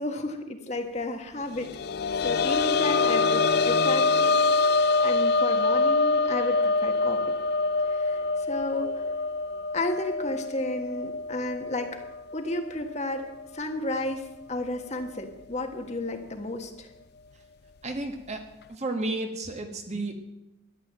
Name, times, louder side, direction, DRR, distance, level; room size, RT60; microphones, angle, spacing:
voice 1, 0.0-1.7 2.2-7.2 7.9-8.9 9.7-12.0 12.3-16.9, left 2 dB, 35° left, 5 dB, 1.5 m, -32 dB
sound 1, 1.6-13.0 13.4-13.5 15.0-15.1, left 3 dB, 50° left, 0.4 m, -25 dB
voice 2, 17.8-18.4 18.7-20.1, right 2 dB, 35° right, 5 dB, 1.4 m, -32 dB
13.5 x 11.0 x 7.5 m, 0.95 s
head